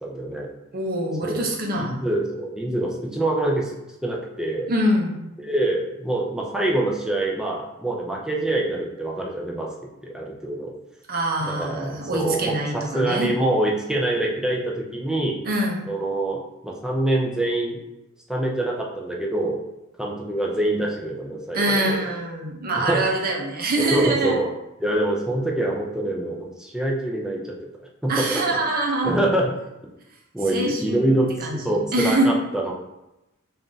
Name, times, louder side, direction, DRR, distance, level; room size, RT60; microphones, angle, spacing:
voice 1, 0.0-0.5 1.2-1.5 1.7-3.7 4.0-4.7 5.4-9.7 10.0-10.7 11.4-15.4 15.9-17.8 18.3-19.6 20.0-21.9 22.8-23.0 23.9-24.5 24.8-27.5 28.0-28.7 29.0-29.5 30.3-32.7, right 1 dB, 5° right, -2 dB, 0.5 m, -25 dB
voice 2, 0.7-1.9 4.7-5.2 11.1-13.3 15.4-15.8 21.5-24.4 28.1-29.1 30.5-31.1 31.4-31.6 31.9-32.3, right 1 dB, 45° right, -1 dB, 0.8 m, -24 dB
3.5 x 2.6 x 3.9 m, 0.92 s
head